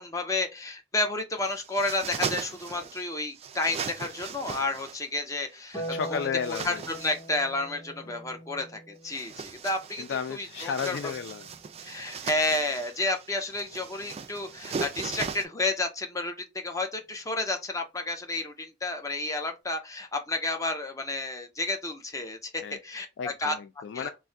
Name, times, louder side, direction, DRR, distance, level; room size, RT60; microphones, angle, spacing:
voice 1, 0.0-5.8 6.1-6.2 6.6-11.0 11.8-23.5 23.9-24.1, left 2 dB, 20° left, 0.6 m, -31 dB
sound 1, 1.4-3.0 3.4-5.0 5.7-7.3 9.0-15.5, right 6 dB, 35° right, 0.3 m, -38 dB
Harp, 5.7-12.2 13.9-14.9, right 1 dB, ahead, 2.0 m, -43 dB
voice 2, 5.9-6.8 10.0-11.5 22.6-22.8 23.2-24.1, left 7 dB, 80° left, 0.3 m, -33 dB
3.4 x 2.1 x 2.5 m
head